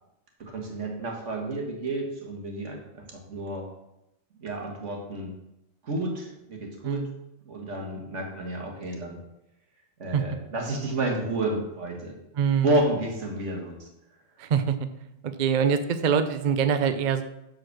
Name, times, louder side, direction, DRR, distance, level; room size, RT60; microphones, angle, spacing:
voice 1, 0.4-3.7 4.4-5.3 5.8-7.1 7.5-9.2 10.0-12.2 12.6-13.9, right 1 dB, 80° right, 1 dB, 1.9 m, -30 dB
voice 2, 12.4-12.7 14.4-14.8 15.2-17.2, right 7 dB, 50° right, 10 dB, 0.6 m, -24 dB
7.7 x 4.2 x 6.5 m, 0.86 s
omnidirectional pair, 1.2 m